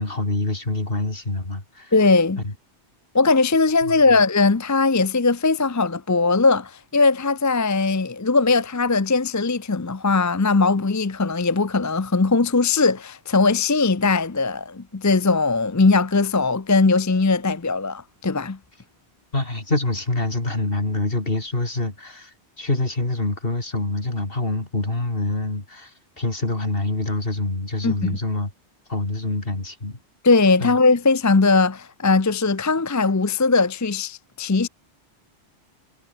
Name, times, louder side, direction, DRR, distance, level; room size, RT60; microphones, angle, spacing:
voice 1, 0.0-1.9 3.8-3.9 19.3-28.5 28.9-30.0 30.6-30.8, left 2 dB, 55° left, 4.4 m, -26 dB
voice 2, 1.9-2.4 3.1-18.6 27.8-28.2 30.2-34.7, left 3 dB, 20° left, 0.5 m, -19 dB
omnidirectional pair, 1.2 m